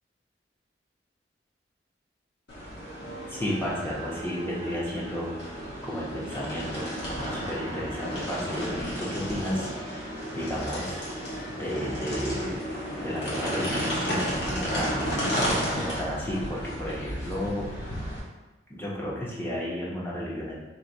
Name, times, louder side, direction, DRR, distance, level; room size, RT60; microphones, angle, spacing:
sound 1, 2.5-18.2, equal, 70° left, 1.4 m, -33 dB
voice 1, 3.3-5.3 5.8-6.9 7.2-11.0 11.5-12.6 12.9-15.1 15.7-17.7 18.7-20.5, equal, 10° left, -5 dB, 0.9 m, -32 dB
3.3 x 3.2 x 4.1 m, 1.1 s
head